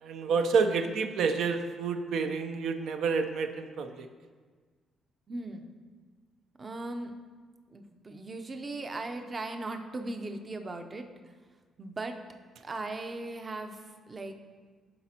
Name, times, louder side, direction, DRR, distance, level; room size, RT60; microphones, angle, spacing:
voice 1, 0.0-4.1, right 5 dB, 75° right, 6 dB, 0.5 m, -29 dB
voice 2, 5.3-5.7 6.6-7.1 7.7-11.1 11.8-12.2 12.6-14.3, right 2 dB, 30° right, 6 dB, 0.6 m, -38 dB
11.5 x 4.3 x 2.8 m, 1.5 s
cardioid pair, 90°, 0 cm